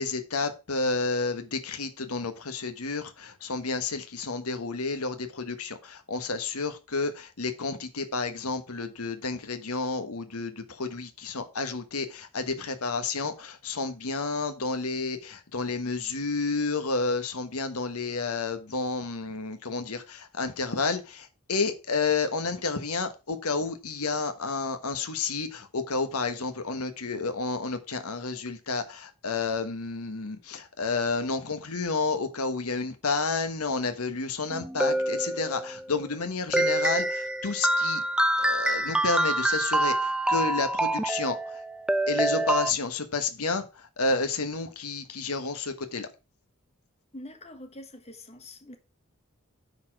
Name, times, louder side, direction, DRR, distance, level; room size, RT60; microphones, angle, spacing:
voice 1, 0.0-38.0 38.4-41.6 42.1-46.1, left 4 dB, 85° left, 1.3 m, -30 dB
sound 1, 34.5-35.8 36.5-42.7, right 1 dB, 5° right, 0.4 m, -26 dB
voice 2, 47.1-48.8, left 1 dB, 30° left, 1.3 m, -44 dB
9.5 x 4.3 x 5.8 m
head